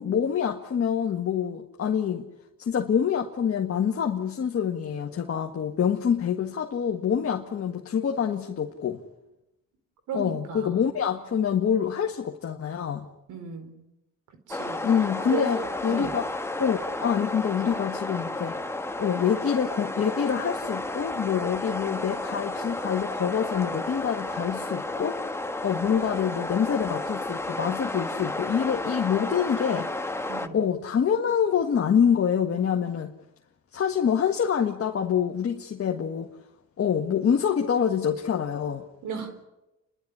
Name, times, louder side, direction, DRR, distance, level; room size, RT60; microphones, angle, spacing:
voice 1, 0.0-2.3 2.6-9.0 10.1-13.1 14.8-15.6 15.8-16.2 16.6-18.5 19.0-25.2 25.6-29.9 30.5-33.1 33.7-36.3 36.8-38.8, left 8 dB, 50° left, 1.7 m, -26 dB
voice 2, 10.1-10.9 13.3-13.7 14.5-14.8 15.2-16.1 30.3-30.6 39.0-39.3, right 5 dB, 80° right, 4.3 m, -35 dB
sound 1, 14.5-30.5, left 2 dB, 10° left, 1.4 m, -32 dB
29.5 x 12.0 x 9.9 m
cardioid pair, 90°, 30 cm